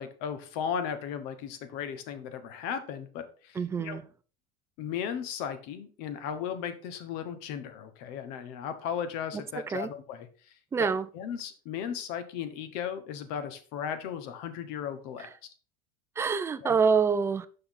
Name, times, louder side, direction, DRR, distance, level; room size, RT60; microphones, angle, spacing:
voice 1, 0.0-4.0 4.8-10.3 10.8-10.9 11.1-15.5 16.6-16.8, left 8 dB, 60° left, 1.2 m, -36 dB
voice 2, 3.6-4.0 9.7-9.9 10.7-11.1 15.2-15.3 16.2-17.5, right 5 dB, 15° right, 0.4 m, -26 dB
6.2 x 5.5 x 4.0 m
supercardioid pair, 130°, 18 cm